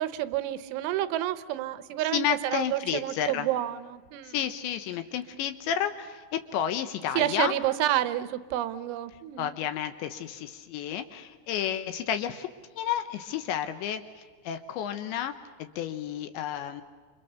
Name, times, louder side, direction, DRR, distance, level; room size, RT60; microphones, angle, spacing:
voice 1, 0.0-4.4 7.2-9.5, right 13 dB, 80° right, 13 dB, 3.3 m, -29 dB
voice 2, 2.1-3.5 4.3-7.5 9.4-12.5 12.8-15.3 15.6-16.8, left 10 dB, 75° left, 9 dB, 3.1 m, -31 dB
29.0 x 26.5 x 6.8 m, 1.5 s
omnidirectional pair, 5.6 m